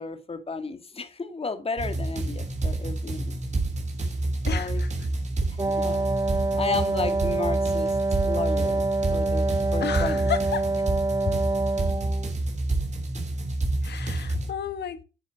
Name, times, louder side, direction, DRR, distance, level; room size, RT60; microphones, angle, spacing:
voice 1, 0.0-3.3 4.4-4.8 5.5-6.1 6.6-8.0 8.2-9.5 9.7-10.3 11.3-11.4, left 4 dB, 30° left, 2.1 m, -33 dB
sound 1, 1.8-14.5, right 2 dB, 35° right, 3.4 m, -28 dB
voice 2, 4.5-4.9 9.8-10.7 13.8-15.0, left 8 dB, 60° left, 1.6 m, -32 dB
Wind instrument woodwind instrument, 5.6-12.3, right 2 dB, 20° right, 0.6 m, -26 dB
10.0 x 7.2 x 7.0 m
cardioid pair, 90°, 20 cm